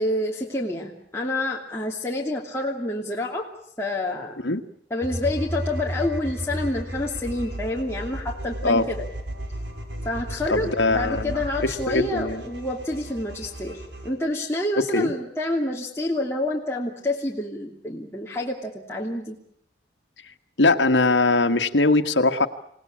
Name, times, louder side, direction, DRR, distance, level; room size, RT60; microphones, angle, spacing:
voice 1, 0.0-3.5 3.8-4.3 4.9-9.0 10.0-19.4, left 1 dB, 15° left, -2 dB, 2.8 m, -28 dB
sound 1, 5.0-14.1, right 1 dB, 75° right, 5.4 m, -34 dB
voice 2, 10.5-12.4 14.9-15.1 20.6-22.5, left 2 dB, 85° left, 6 dB, 1.6 m, -21 dB
28.5 x 18.5 x 8.6 m, 0.71 s
head